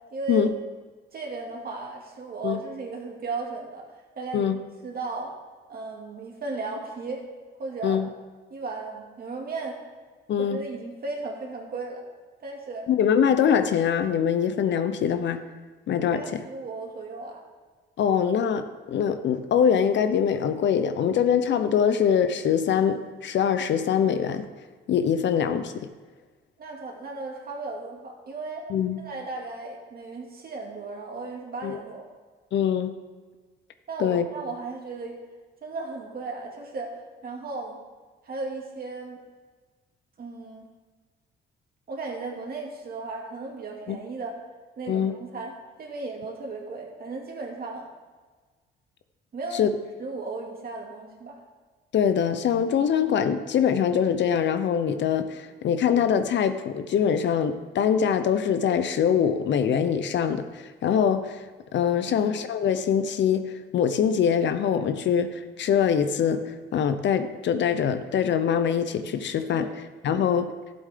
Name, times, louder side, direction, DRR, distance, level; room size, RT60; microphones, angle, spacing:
voice 1, 0.1-0.5 1.1-3.9 4.2-4.5 4.8-5.3 5.7-7.3 7.6-8.0 8.5-9.8 10.4-12.0 12.4-12.9 16.1-17.4 21.9-22.0 26.6-28.6 29.0-32.0 33.9-35.2 35.6-37.0 37.2-37.8 38.2-39.2 40.2-40.7 41.9-44.4 44.8-45.5 45.8-47.9 49.3-51.4 62.1-62.3 69.5-69.7 70.1-70.3, right 3 dB, 50° right, 0 dB, 2.4 m, -35 dB
voice 2, 10.3-10.6 12.9-15.4 15.9-16.4 18.0-24.5 24.9-25.9 28.7-29.0 31.6-31.8 32.5-32.9 34.0-34.3 43.9-44.0 44.9-45.1 49.5-49.7 51.9-61.4 61.7-69.7 70.0-70.5, left 8 dB, 65° left, 10 dB, 0.8 m, -23 dB
13.0 x 7.9 x 3.7 m, 1.4 s
cardioid pair, 90°, 20 cm